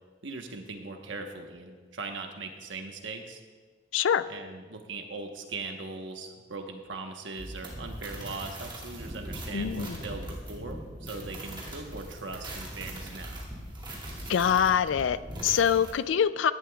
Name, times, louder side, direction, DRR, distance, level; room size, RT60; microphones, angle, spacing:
voice 1, 0.2-3.4 4.3-13.5, right 3 dB, 75° right, 4 dB, 1.1 m, -40 dB
voice 2, 3.9-4.3 9.5-10.0 14.3-16.5, left 8 dB, 75° left, 15 dB, 0.4 m, -25 dB
sound 1, 7.4-15.9, right 1 dB, 25° right, 2.3 m, -40 dB
16.5 x 11.0 x 2.3 m, 1.5 s
head